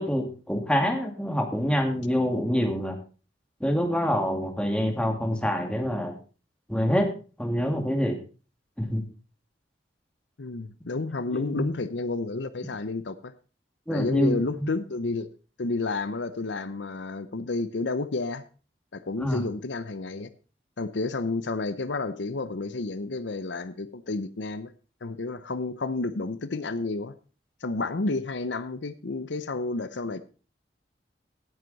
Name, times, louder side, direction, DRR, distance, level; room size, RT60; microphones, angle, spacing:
voice 1, 0.0-3.0 3.6-6.2 6.7-7.1 7.4-8.2 8.8-9.0 11.3-11.7 13.9-14.7 19.2-19.4, equal, 5° left, 3 dB, 2.2 m, -26 dB
voice 2, 10.4-13.3 13.9-15.3 15.6-18.4 18.9-20.3 20.8-24.7 25.0-27.1 27.6-30.2, left 3 dB, 75° left, 13 dB, 0.7 m, -30 dB
17.0 x 7.8 x 4.1 m, 0.35 s
head